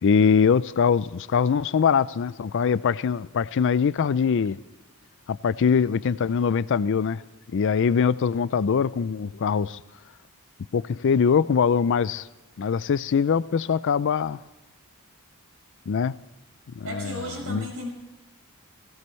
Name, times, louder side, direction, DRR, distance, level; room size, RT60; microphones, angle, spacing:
voice 1, 0.0-4.6 5.3-7.2 7.5-9.8 10.7-12.3 12.6-14.4 15.9-16.1 16.8-17.7, left 6 dB, 55° left, 0.4 m, -23 dB
voice 2, 16.8-17.9, equal, 65° right, 6.0 m, -34 dB
18.0 x 16.5 x 3.2 m
head